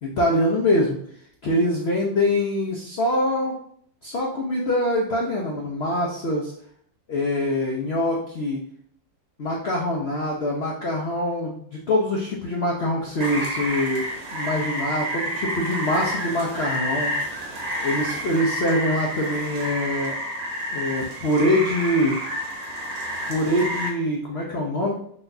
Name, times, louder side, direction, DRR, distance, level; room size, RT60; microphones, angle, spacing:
voice 1, 0.0-1.0 1.4-3.6 4.0-6.5 7.1-8.6 9.4-14.0 14.3-17.2 17.8-20.2 20.7-22.2 23.3-24.9, left 1 dB, 65° left, -2 dB, 0.6 m, -24 dB
Rain, 13.2-23.9, equal, 55° right, 1.4 m, -29 dB
5.8 x 3.4 x 2.6 m, 0.65 s
omnidirectional pair, 2.0 m